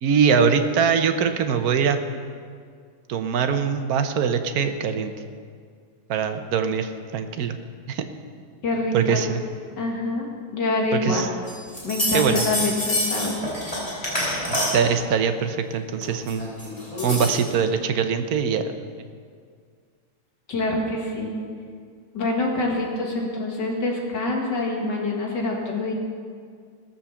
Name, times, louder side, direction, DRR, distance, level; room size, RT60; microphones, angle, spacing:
voice 1, 0.0-2.0 3.1-5.1 6.1-7.6 7.9-8.0 8.9-9.4 11.0-11.3 12.1-12.4 14.5-16.4 17.0-18.7, right 6 dB, 65° right, 7 dB, 1.3 m, -22 dB
voice 2, 8.6-9.2 9.8-10.3 10.5-11.3 11.8-13.3 20.5-21.3 22.1-25.9, left 2 dB, 80° left, -1 dB, 2.5 m, -25 dB
sound 1, 11.5-14.9 16.0-17.5, left 1 dB, 20° left, 4.1 m, -27 dB
17.5 x 7.3 x 7.0 m, 2.1 s
omnidirectional pair, 1.8 m